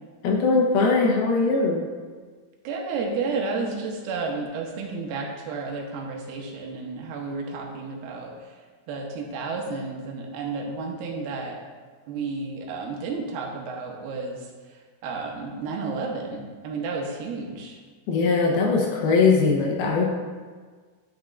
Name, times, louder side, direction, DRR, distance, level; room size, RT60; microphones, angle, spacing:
voice 1, 0.2-1.9 18.1-20.1, left 4 dB, 80° left, -1 dB, 2.7 m, -20 dB
voice 2, 2.6-8.3 8.9-11.6 12.1-14.4 15.0-17.8, right 4 dB, 80° right, 0 dB, 2.7 m, -31 dB
11.0 x 6.3 x 2.4 m, 1.5 s
omnidirectional pair, 4.5 m